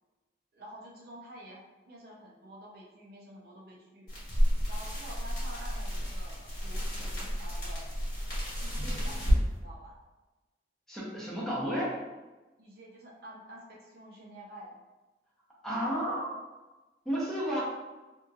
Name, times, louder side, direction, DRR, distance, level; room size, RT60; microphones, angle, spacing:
voice 1, 0.5-4.1 4.7-8.0 8.6-10.0 12.6-14.8, right 1 dB, 60° right, -3 dB, 0.6 m, -49 dB
sound 1, 4.1-9.4, equal, 55° left, 1.2 m, -30 dB
voice 2, 10.9-12.0 15.6-16.3 17.0-17.6, equal, 5° left, -7 dB, 0.7 m, -32 dB
2.8 x 2.6 x 2.4 m, 1.1 s
head